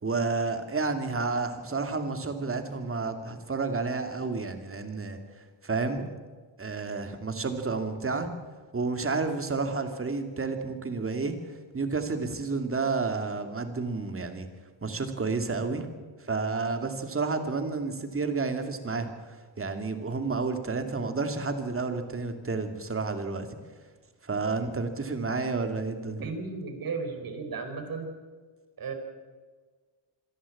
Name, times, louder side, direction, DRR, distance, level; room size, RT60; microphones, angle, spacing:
voice 1, 0.0-5.2 5.6-6.2 6.6-8.3 8.7-14.5 14.8-15.9 16.3-23.5 24.2-26.3, right 4 dB, 25° right, 6 dB, 2.7 m, -30 dB
voice 2, 26.2-28.1 28.8-28.9, right 4 dB, 45° right, 5 dB, 4.6 m, -35 dB
26.5 x 11.5 x 8.7 m, 1.4 s
cardioid pair, 100°, 48 cm